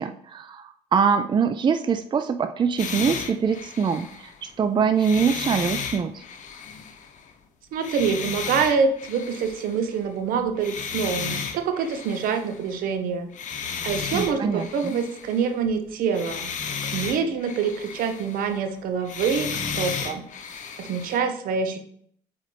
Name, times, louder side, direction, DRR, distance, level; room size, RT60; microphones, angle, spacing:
voice 1, 0.0-6.2 14.1-14.9, right 6 dB, 30° right, 9 dB, 0.4 m, -24 dB
sound 1, 2.8-4.5 4.9-7.3 7.8-10.1 10.5-12.7 13.3-15.7 16.1-18.7 19.0-21.2, left 6 dB, 55° left, 0.8 m, -34 dB
voice 2, 7.7-13.3 13.8-20.3 20.8-21.8, right 6 dB, 70° right, 7 dB, 0.9 m, -26 dB
7.6 x 3.9 x 3.3 m, 0.66 s
hypercardioid pair, 60°, 15 cm